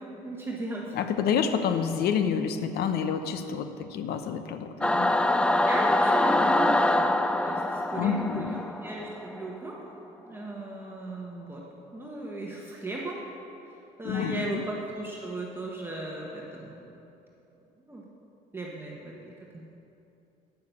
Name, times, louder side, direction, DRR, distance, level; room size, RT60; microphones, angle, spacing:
voice 1, 0.0-0.9 1.2-1.3 5.6-7.1 7.4-9.8 10.3-11.6 11.9-13.3 14.0-16.9 17.9-18.0 18.5-19.1 19.5-19.6, right 1 dB, 15° right, -3 dB, 1.2 m, -36 dB
voice 2, 0.9-5.1 8.0-8.6 14.0-14.6, left 7 dB, 70° left, 8 dB, 0.8 m, -28 dB
Singing / Musical instrument, 4.8-9.5, left 1 dB, 5° left, 0.3 m, -24 dB
9.2 x 6.5 x 6.9 m, 2.8 s
cardioid pair, 110°, 17 cm